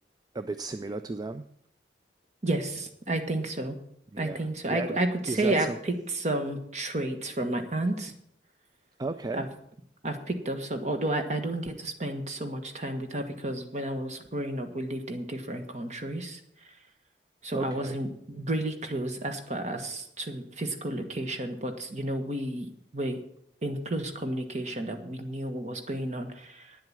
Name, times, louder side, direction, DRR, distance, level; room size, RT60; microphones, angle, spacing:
voice 1, 0.3-1.5 4.1-5.8 9.0-9.5 17.5-18.0, right 3 dB, 20° right, 11 dB, 0.4 m, -34 dB
voice 2, 2.4-3.8 4.2-8.1 9.4-9.5 10.0-16.7 17.4-22.7 22.9-23.2 23.6-26.8, right 1 dB, 40° right, 6 dB, 1.4 m, -31 dB
9.8 x 7.8 x 8.8 m, 0.70 s
head